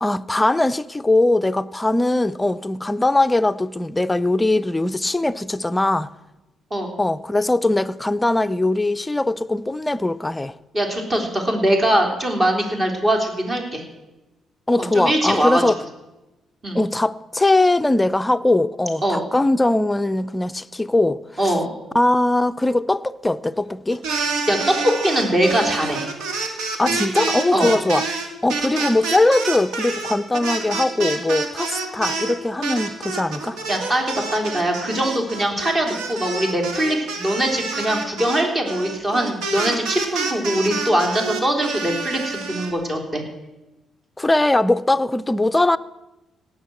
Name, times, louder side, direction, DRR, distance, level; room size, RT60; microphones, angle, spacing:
voice 1, 0.0-6.1 7.0-10.5 14.7-15.8 16.7-21.5 21.9-24.0 26.8-28.0 28.4-33.6 44.2-45.8, left 2 dB, 15° left, 0.5 m, -20 dB
voice 2, 10.7-13.8 14.8-15.6 16.6-16.8 19.0-19.3 21.4-21.7 24.5-26.0 27.5-27.7 33.7-43.2, right 1 dB, 30° right, 3.5 m, -22 dB
sound 1, 23.9-32.3 32.6-42.7, right 4 dB, 90° right, 2.0 m, -27 dB
17.5 x 6.5 x 7.8 m
cardioid pair, 90°, 0 cm